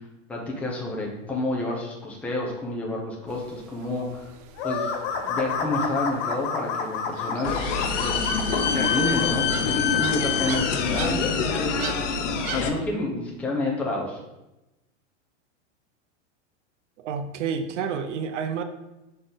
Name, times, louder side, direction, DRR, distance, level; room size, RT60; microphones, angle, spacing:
voice 1, 0.3-4.3 4.6-5.0 5.2-7.6 8.0-12.0 12.6-14.2, left 2 dB, 5° left, -3 dB, 0.8 m, -29 dB
sound 1, 3.3-12.8, right 8 dB, 35° right, 0.4 m, -41 dB
sound 2, 4.6-9.3, left 5 dB, 45° left, 0.8 m, -30 dB
sound 3, 7.4-12.7, left 6 dB, 80° left, 0.9 m, -25 dB
voice 2, 17.0-18.6, right 6 dB, 75° right, 8 dB, 0.7 m, -29 dB
6.3 x 4.1 x 3.9 m, 0.96 s
supercardioid pair, 150°, 36 cm